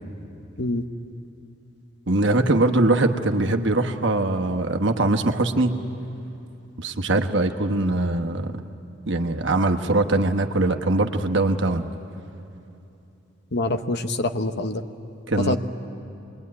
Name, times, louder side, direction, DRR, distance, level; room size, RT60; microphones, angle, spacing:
voice 1, 2.1-5.8 6.8-8.6 9.1-11.8 15.3-15.6, right 2 dB, 60° right, 5 dB, 1.2 m, -22 dB
voice 2, 13.5-14.8 15.4-15.6, left 2 dB, 55° left, 8 dB, 1.0 m, -25 dB
26.0 x 21.0 x 9.7 m, 2.8 s
head